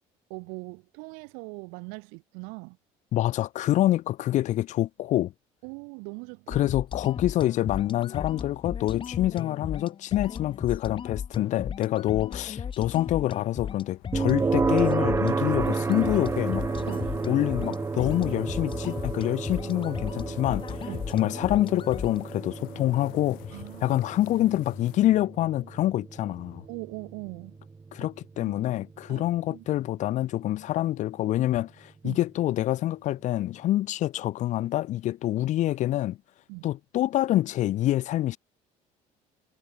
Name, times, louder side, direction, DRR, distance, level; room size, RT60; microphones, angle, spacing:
voice 1, 0.3-2.8 5.6-6.6 16.9-17.2 20.9-21.0 23.5-24.0 26.7-27.6 28.0-28.1 29.1-29.2 29.5-29.6 32.0-32.2 36.5-36.7, right 35 dB, 85° right, 4.3 m, -40 dB
voice 2, 3.1-5.3 6.5-16.6 17.3-20.6 21.1-23.4 23.8-26.6 27.9-36.2 36.6-38.4, left 14 dB, 55° left, 1.2 m, -26 dB
sound 1, 6.5-22.2, left 7 dB, 35° left, 4.8 m, -36 dB
sound 2, 13.8-25.1, left 24 dB, 80° left, 5.7 m, -51 dB
sound 3, 14.1-29.1, right 4 dB, 20° right, 1.1 m, -31 dB
cardioid pair, 110°, 14 cm